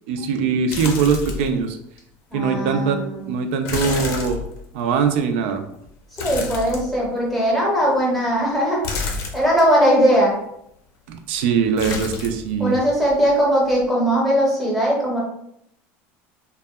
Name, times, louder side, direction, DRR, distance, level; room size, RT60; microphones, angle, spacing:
voice 1, 0.1-1.8 2.3-4.4 4.7-5.6 11.1-12.8, right 6 dB, 80° right, 6 dB, 0.4 m, -22 dB
sound 1, 0.7-1.6 2.0-2.1 3.7-4.9 6.2-7.3 8.8-9.7 11.8-12.5 12.7-13.4 13.7-13.8, left 4 dB, 55° left, 0.5 m, -29 dB
voice 2, 2.3-3.3 6.2-8.8 9.3-10.3 12.6-15.2, equal, ahead, -4 dB, 0.7 m, -19 dB
2.6 x 2.2 x 2.2 m, 0.75 s
cardioid pair, 160°, 6 cm